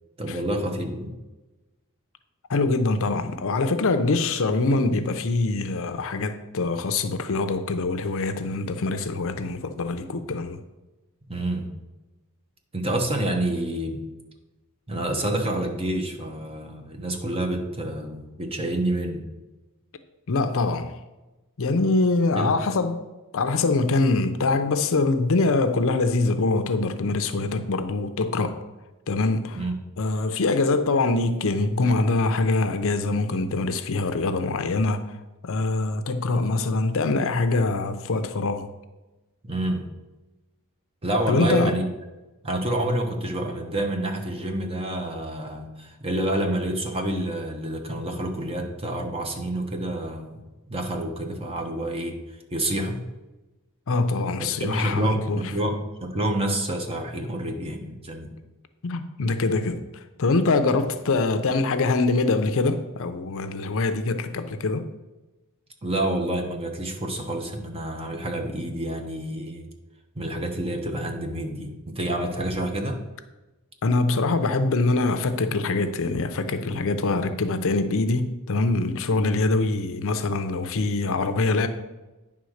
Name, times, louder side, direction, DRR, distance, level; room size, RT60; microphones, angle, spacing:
voice 1, 0.2-1.1 11.3-11.7 12.7-14.0 14.9-19.2 22.3-22.5 29.5-29.7 39.4-39.9 41.0-41.9 42.4-50.4 50.7-52.2 52.5-53.0 54.4-58.3 65.8-69.7 70.1-73.0, right 1 dB, 25° right, 1.0 m, -28 dB
voice 2, 2.5-10.6 20.3-20.9 21.6-23.0 23.3-28.6 29.1-29.6 30.0-35.0 35.4-38.7 41.3-41.7 53.9-55.5 58.8-59.8 60.2-64.9 73.8-81.7, left 3 dB, 65° left, 0.6 m, -24 dB
9.5 x 3.6 x 6.4 m
head